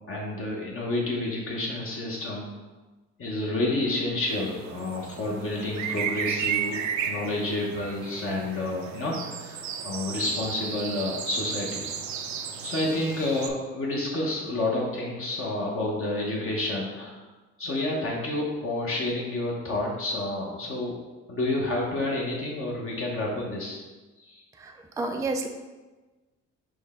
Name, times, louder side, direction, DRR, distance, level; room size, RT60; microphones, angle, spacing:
voice 1, 0.1-2.5 3.2-11.8 12.6-17.2 17.6-21.0 21.3-23.8 24.2-24.4, left 2 dB, 45° left, -3 dB, 0.9 m, -29 dB
sound 1, 4.3-13.5, right 7 dB, 70° right, 0.5 m, -34 dB
voice 2, 24.6-25.5, right 2 dB, 10° right, 4 dB, 0.3 m, -30 dB
6.2 x 2.2 x 3.6 m, 1.2 s
cardioid pair, 90°, 30 cm